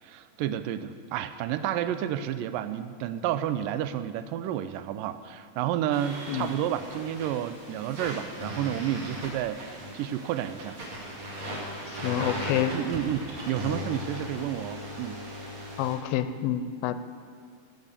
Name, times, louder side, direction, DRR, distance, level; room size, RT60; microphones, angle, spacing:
voice 1, 0.0-10.8 12.7-15.2, right 11 dB, 80° right, 12 dB, 2.1 m, -31 dB
sound 1, 5.9-16.0, equal, 50° right, 3.4 m, -38 dB
voice 2, 11.9-12.8 15.8-17.0, left 10 dB, 85° left, 12 dB, 2.3 m, -28 dB
16.5 x 9.4 x 7.3 m, 2.1 s
omnidirectional pair, 4.3 m